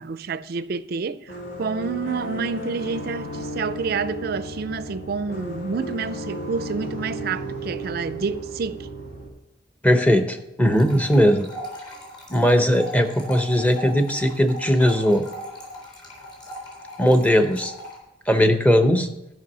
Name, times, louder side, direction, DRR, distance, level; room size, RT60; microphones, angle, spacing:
voice 1, 0.0-8.9, right 5 dB, 55° right, 0.4 m, -29 dB
sound 1, 1.3-9.3, right 1 dB, 70° left, 1.7 m, -34 dB
voice 2, 9.8-11.5 12.3-15.3 17.0-17.7 18.3-19.1, equal, 10° left, 0.7 m, -19 dB
sound 2, 10.7-18.0, equal, 25° left, 3.4 m, -38 dB
12.5 x 5.5 x 6.1 m
head